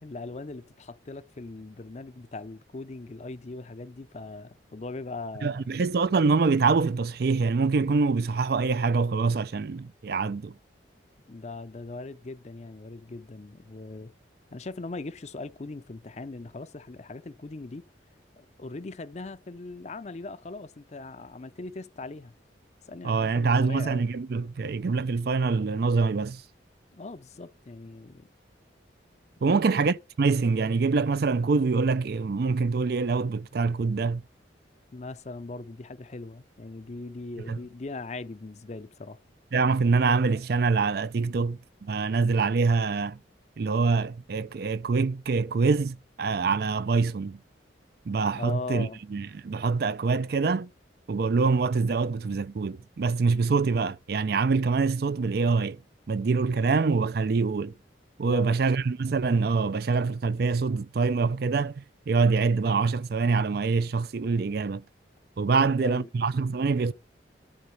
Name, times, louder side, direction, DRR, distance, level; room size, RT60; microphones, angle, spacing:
voice 1, 0.0-5.7 11.3-14.1 14.5-17.9 18.4-22.3 22.9-24.1 26.9-28.3 29.4-29.6 34.9-39.2 48.3-49.0 58.2-58.6 65.5-66.1, left 3 dB, 40° left, 0.5 m, -40 dB
voice 2, 5.4-10.5 23.0-26.4 29.4-34.2 37.5-37.6 39.5-43.2 43.6-47.4 48.1-50.7 51.1-55.8 56.1-57.7 58.2-64.8 65.4-66.9, right 4 dB, 55° right, 0.4 m, -25 dB
11.5 x 3.9 x 7.0 m
head